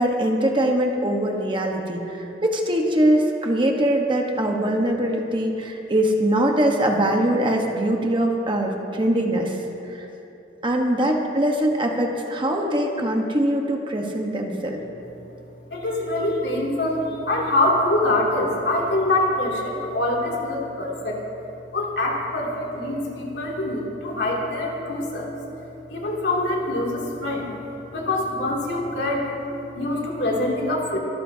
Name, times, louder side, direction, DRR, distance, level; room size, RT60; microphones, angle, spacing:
voice 1, 0.0-9.6 9.9-10.1 10.6-14.8, right 1 dB, 25° right, 1 dB, 1.2 m, -22 dB
voice 2, 15.7-21.2 21.7-25.3 25.9-27.5 27.9-29.3 29.7-31.0, left 1 dB, 70° left, -3 dB, 2.7 m, -24 dB
24.5 x 13.0 x 2.8 m, 2.9 s
head